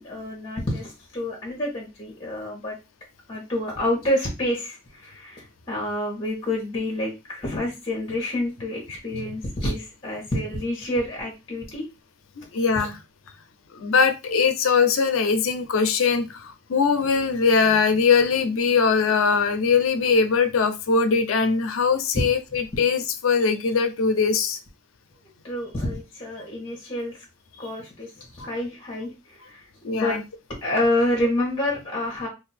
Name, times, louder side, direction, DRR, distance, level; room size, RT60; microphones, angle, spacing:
voice 1, 0.0-2.8 3.3-11.8 12.8-12.9 25.4-27.2 27.6-29.7 29.9-30.2 30.6-32.3, left 1 dB, 25° left, -2 dB, 1.1 m, -28 dB
voice 2, 12.5-12.9 13.7-24.6 28.4-28.5 29.8-30.2, left 5 dB, 90° left, 9 dB, 0.5 m, -21 dB
2.6 x 2.5 x 4.1 m, 0.26 s
head